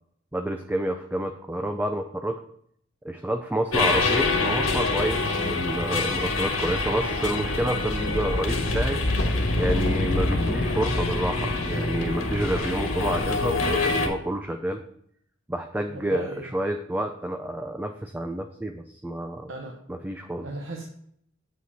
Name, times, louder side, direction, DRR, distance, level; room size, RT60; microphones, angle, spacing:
voice 1, 0.3-2.4 3.0-9.0 9.6-14.8 15.5-19.5 19.9-20.5, right 1 dB, 10° right, 6 dB, 0.4 m, -29 dB
sound 1, 3.7-14.1, left 3 dB, 85° left, 1.5 m, -25 dB
voice 2, 15.9-16.5 19.5-19.8 20.4-20.8, right 1 dB, 70° right, 1 dB, 1.0 m, -36 dB
7.6 x 5.6 x 4.1 m, 0.68 s
head